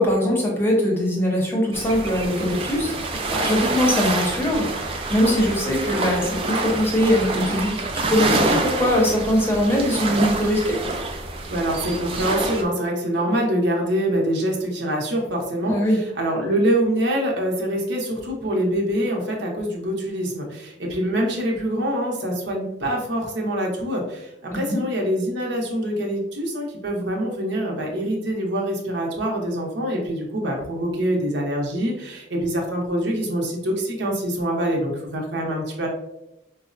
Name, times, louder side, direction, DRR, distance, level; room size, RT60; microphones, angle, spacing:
voice 1, 0.0-10.7 15.7-16.0 24.5-24.8, left 1 dB, 15° left, -2 dB, 0.7 m, -22 dB
sound 1, 1.7-12.6, right 2 dB, 30° right, 0.3 m, -27 dB
voice 2, 11.5-35.9, right 1 dB, 75° right, -1 dB, 0.7 m, -25 dB
4.5 x 2.0 x 2.5 m, 0.88 s
head